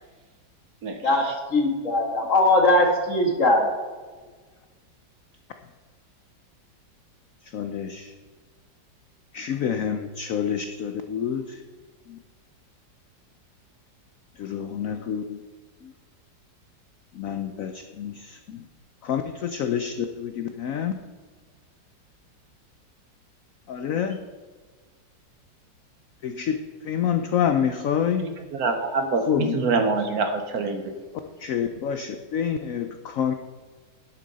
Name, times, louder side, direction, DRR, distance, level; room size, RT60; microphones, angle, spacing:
voice 1, 1.0-3.7, left 2 dB, 45° left, 2 dB, 1.7 m, -20 dB
voice 2, 7.4-8.1 9.3-11.6 12.1-12.2 14.4-15.4 15.8-15.9 17.1-18.7 19.0-20.9 23.7-24.2 26.2-28.2 29.3-29.6 31.4-33.3, left 8 dB, 65° left, 7 dB, 0.8 m, -28 dB
voice 3, 28.5-30.9, right 4 dB, 60° right, 6 dB, 1.2 m, -25 dB
11.5 x 7.6 x 4.1 m, 1.4 s
omnidirectional pair, 2.0 m